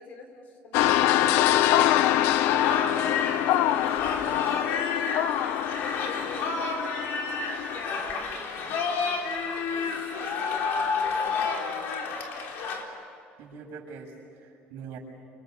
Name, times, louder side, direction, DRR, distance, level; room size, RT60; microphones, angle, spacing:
voice 1, 0.0-2.1 3.0-5.5 5.9-6.7 7.7-11.8, left 3 dB, 45° left, 5 dB, 4.2 m, -44 dB
sound 1, 0.7-7.8, left 12 dB, 80° left, 0.9 m, -25 dB
sound 2, 1.9-12.8, left 5 dB, 60° left, 3.9 m, -30 dB
voice 2, 13.4-15.0, right 5 dB, 75° right, 1 dB, 7.5 m, -43 dB
29.5 x 27.5 x 6.9 m, 2.6 s
cardioid pair, 155°, 4 cm